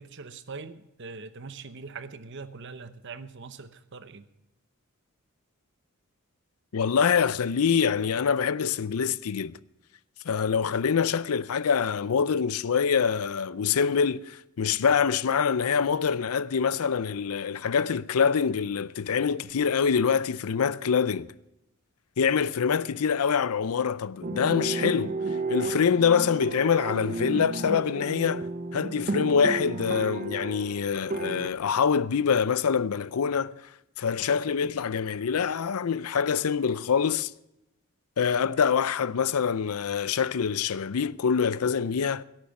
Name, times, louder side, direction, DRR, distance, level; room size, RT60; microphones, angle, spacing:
voice 1, 0.0-4.2, right 4 dB, 55° right, 0.9 m, -42 dB
voice 2, 6.7-9.6 10.2-21.3 22.2-25.2 25.5-28.5 28.7-33.6 34.0-37.3 38.2-42.2, left 6 dB, 80° left, 0.5 m, -25 dB
sound 1, 24.2-31.5, right 2 dB, 35° right, 0.5 m, -33 dB
17.0 x 8.9 x 5.8 m
head